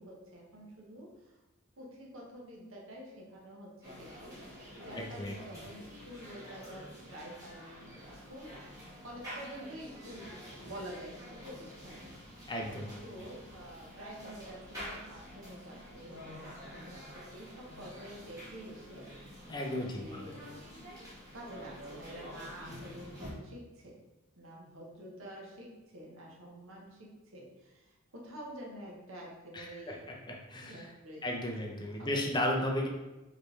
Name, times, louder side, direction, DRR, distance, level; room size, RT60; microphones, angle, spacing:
voice 1, 0.0-1.4 1.8-8.6 8.9-12.1 12.8-19.3 19.7-20.4 21.3-24.0 24.4-30.1 30.5-31.4 32.0-32.1, right 1 dB, 75° right, -2 dB, 1.1 m, -48 dB
sound 1, 3.8-23.3, equal, 15° right, 1.4 m, -48 dB
voice 2, 5.0-5.3 12.5-12.9 19.5-20.3 29.5-30.0 30.3-30.9 31.2-32.9, left 1 dB, 20° left, 0 dB, 0.6 m, -34 dB
4.9 x 3.2 x 3.2 m, 1.1 s
head